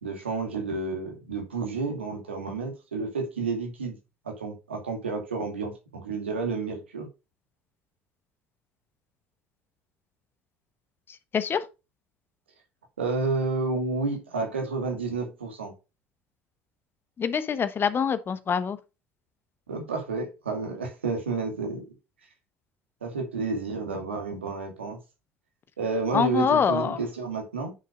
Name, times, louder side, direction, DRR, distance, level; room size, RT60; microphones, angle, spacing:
voice 1, 0.0-4.0 4.2-7.1 13.0-15.7 19.7-21.9 23.0-25.0 25.8-27.7, right 3 dB, 90° right, 2.5 m, -30 dB
voice 2, 17.2-18.8 26.1-27.0, left 7 dB, 35° left, 1.1 m, -25 dB
9.4 x 6.7 x 2.5 m
hypercardioid pair, 65°, 6 cm